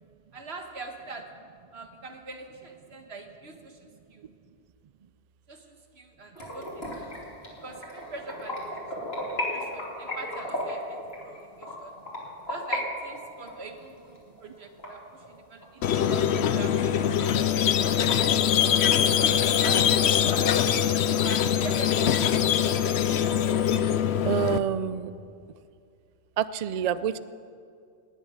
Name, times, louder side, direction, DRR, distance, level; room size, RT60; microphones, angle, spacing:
voice 1, 0.3-1.2 1.7-4.3 5.5-7.1 7.6-8.6 9.3-11.0 11.2-11.9 12.5-17.5 18.8-20.8 21.2-22.8, right 3 dB, 80° right, 4 dB, 1.7 m, -43 dB
sound 1, 6.4-12.8 13.1-15.7 16.0-16.1 16.6-16.7 17.0-17.1 17.4-18.1, left 1 dB, 70° left, 3.2 m, -35 dB
Squeak, 15.8-24.6, left 9 dB, 85° left, 0.9 m, -23 dB
voice 2, 24.2-25.1 26.4-27.2, right 9 dB, 55° right, 15 dB, 0.4 m, -27 dB
18.0 x 7.3 x 9.6 m, 2.4 s
omnidirectional pair, 1.1 m